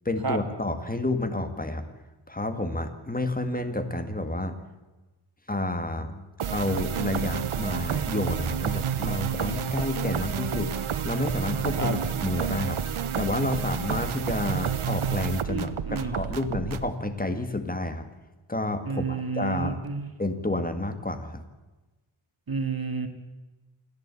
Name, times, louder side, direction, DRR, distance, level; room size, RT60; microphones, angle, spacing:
voice 1, 0.1-1.8 2.3-4.6 5.5-6.2 6.5-10.7 11.0-12.8 13.2-18.1 18.5-19.8 20.2-21.4, left 2 dB, 15° left, 8 dB, 2.0 m, -30 dB
sound 1, 6.4-16.9, right 8 dB, 85° right, 1.1 m, -30 dB
voice 2, 15.5-16.2 18.9-20.1 22.5-23.1, right 4 dB, 45° right, 7 dB, 2.2 m, -30 dB
28.5 x 11.0 x 8.4 m, 1.1 s
wide cardioid pair, 80°, 48 cm